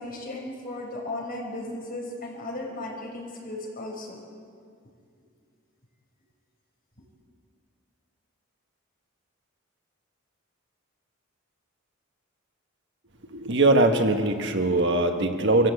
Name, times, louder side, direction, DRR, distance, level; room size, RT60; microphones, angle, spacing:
voice 1, 0.0-4.2, left 2 dB, 45° left, -1 dB, 6.1 m, -35 dB
voice 2, 13.3-15.7, right 2 dB, 60° right, 5 dB, 1.6 m, -21 dB
25.5 x 15.0 x 8.5 m, 2.2 s
head